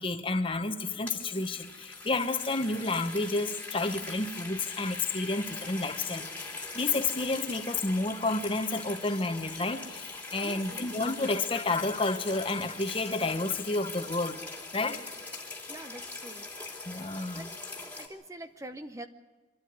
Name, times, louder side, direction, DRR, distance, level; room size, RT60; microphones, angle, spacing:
voice 1, 0.0-14.4 14.7-15.0 16.8-17.5, left 3 dB, 30° left, 1.0 m, -30 dB
sound 1, 0.8-18.1, left 3 dB, 10° left, 2.5 m, -42 dB
voice 2, 10.4-10.8 15.7-16.5 17.3-17.5 18.0-19.1, right 1 dB, 20° right, 0.7 m, -44 dB
24.5 x 12.5 x 9.4 m
head